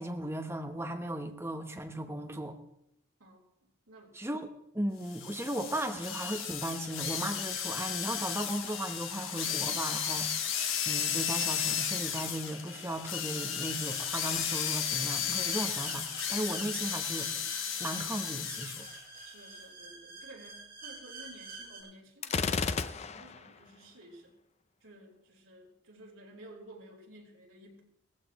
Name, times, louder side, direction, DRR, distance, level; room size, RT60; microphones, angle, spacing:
voice 1, 0.0-2.6 4.1-4.5 4.7-17.3 17.8-18.9, right 1 dB, 10° right, 5 dB, 0.9 m, -36 dB
voice 2, 3.9-4.2 19.2-24.3 24.8-27.8, right 1 dB, 80° right, -2 dB, 3.5 m, -53 dB
sound 1, 5.1-19.0, left 8 dB, 65° left, 1.3 m, -34 dB
sound 2, 13.7-21.8, right 3 dB, 45° right, 7.2 m, -47 dB
Gunshot gunfire, 22.2-23.5, left 5 dB, 30° left, 0.5 m, -32 dB
17.5 x 15.0 x 3.1 m, 0.80 s
head